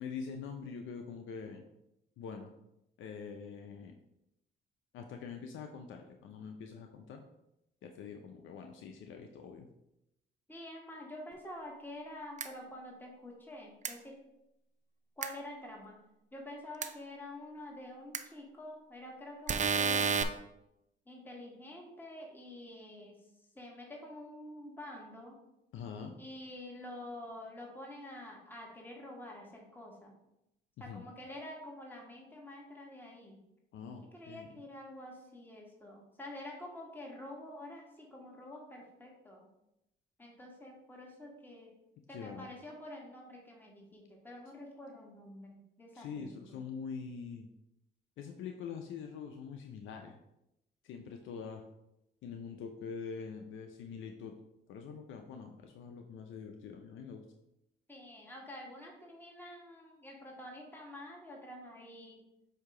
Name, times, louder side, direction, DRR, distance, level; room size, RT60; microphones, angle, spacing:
voice 1, 0.0-1.6 2.2-2.5 3.0-3.9 4.9-7.2 7.8-9.7 25.7-26.2 30.9-31.0 33.7-34.5 42.1-42.5 45.9-47.5 48.2-50.2 50.8-51.6 52.2-54.4 54.7-57.3, left 6 dB, 80° left, 4 dB, 0.6 m, -44 dB
voice 2, 10.5-14.2 15.2-16.0 16.3-20.4 21.1-23.2 23.6-25.4 26.2-30.2 30.8-33.4 34.1-39.5 40.2-41.7 42.1-46.6 57.9-62.2, left 1 dB, 10° left, -1 dB, 1.8 m, -48 dB
sound 1, 12.4-12.5 13.9-14.0 15.2-15.3 16.8-16.9 18.1-18.2 19.5-20.2, right 5 dB, 35° right, 0.6 m, -29 dB
7.9 x 2.8 x 4.9 m, 0.86 s
cardioid pair, 90°, 20 cm